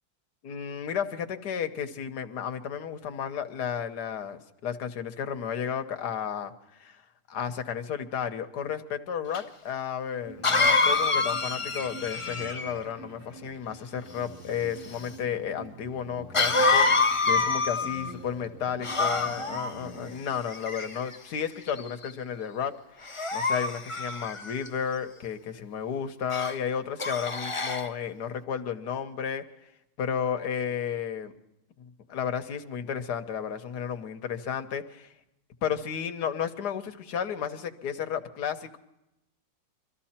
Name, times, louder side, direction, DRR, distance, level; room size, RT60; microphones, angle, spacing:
voice 1, 0.4-7.0 7.3-22.7 23.3-29.4 30.0-31.3 32.1-35.1 35.6-38.8, left 8 dB, 65° left, 7 dB, 1.5 m, -33 dB
Cough, 9.3-9.4 10.4-12.8 16.3-18.1 18.8-19.7 20.5-21.1 21.8-22.1 23.0-24.7 26.3-26.6 27.0-27.9, left 3 dB, 35° left, 0.5 m, -26 dB
sound 1, 10.2-20.1, right 1 dB, 60° right, 8.5 m, -47 dB
23.5 x 14.0 x 4.3 m, 0.88 s
omnidirectional pair, 2.0 m